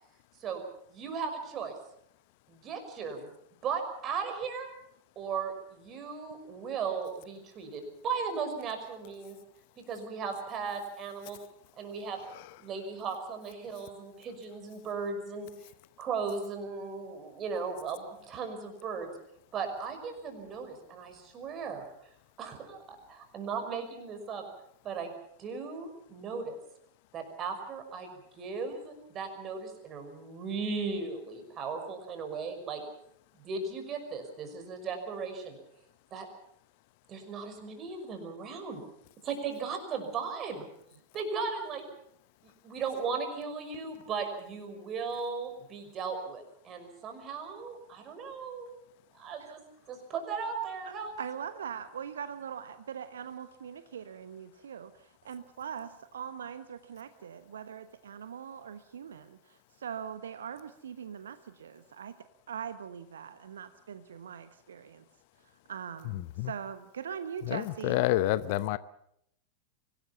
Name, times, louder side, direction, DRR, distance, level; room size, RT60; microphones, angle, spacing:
voice 1, 0.9-1.7 2.5-3.3 3.6-4.7 5.2-9.4 9.8-11.4 11.8-12.2 12.6-15.5 16.0-19.1 19.5-21.9 22.4-24.4 24.8-25.1 25.4-26.6 27.1-28.1 28.4-32.8 33.3-35.6 36.1-36.3 37.1-38.8 39.2-40.6 41.1-41.8 42.4-48.8 49.1-49.6 49.9-51.1, right 5 dB, 30° right, 6 dB, 5.7 m, -37 dB
voice 2, 51.2-62.1 62.5-65.0 65.7-68.0, right 8 dB, 65° right, 11 dB, 1.1 m, -41 dB
voice 3, 66.1-66.5 67.4-68.8, left 16 dB, 50° left, 17 dB, 0.8 m, -28 dB
24.5 x 19.0 x 7.1 m, 0.73 s
figure-of-eight pair, 90°, 0 cm